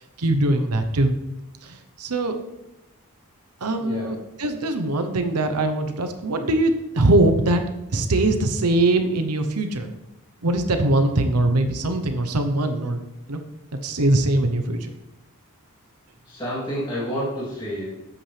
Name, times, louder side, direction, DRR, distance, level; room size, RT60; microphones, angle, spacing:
voice 1, 0.2-1.1 1.6-2.4 3.6-7.6 7.9-9.9 10.4-13.0 13.3-13.4 13.8-14.9, right 2 dB, 90° right, 7 dB, 1.0 m, -22 dB
voice 2, 3.8-4.1 16.2-18.0, equal, 20° left, -9 dB, 3.1 m, -29 dB
12.5 x 8.6 x 3.4 m, 0.91 s
head